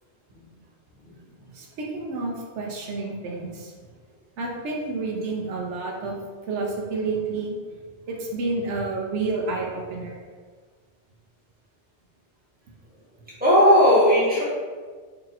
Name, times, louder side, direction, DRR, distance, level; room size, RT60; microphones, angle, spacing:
voice 1, 1.5-3.7 4.4-6.2 6.5-7.6 8.1-10.2, right 3 dB, 85° right, -1 dB, 0.9 m, -29 dB
voice 2, 13.4-14.4, equal, 10° right, -8 dB, 1.1 m, -16 dB
2.8 x 2.8 x 3.9 m, 1.5 s
omnidirectional pair, 1.2 m